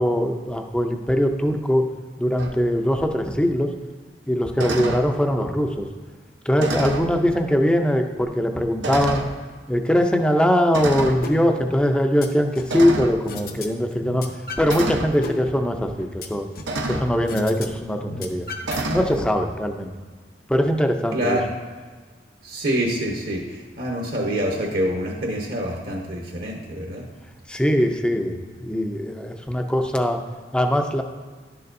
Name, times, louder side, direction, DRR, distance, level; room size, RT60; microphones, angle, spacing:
voice 1, 0.0-1.8 2.2-3.7 4.3-5.9 6.5-9.2 9.7-14.2 14.6-16.5 16.9-18.5 18.9-19.9 20.5-21.4 27.5-30.2 30.5-31.0, equal, 5° left, 5 dB, 0.5 m, -21 dB
sound 1, 2.4-2.6 4.6-5.1 6.6-7.1 8.0-8.1 8.8-9.3 10.7-11.2 12.7-13.2 14.7-15.1 16.7-17.1 18.6-19.1, right 2 dB, 85° right, 0.8 m, -27 dB
sound 2, 11.2-11.4 11.7-12.8 13.3-13.7 13.9-14.8 15.1-16.8 17.3-17.7 17.9-19.2, left 3 dB, 55° left, 0.8 m, -34 dB
voice 2, 21.1-21.5 22.4-27.1, equal, 55° right, 0 dB, 1.0 m, -26 dB
11.0 x 6.7 x 2.6 m, 1.5 s
head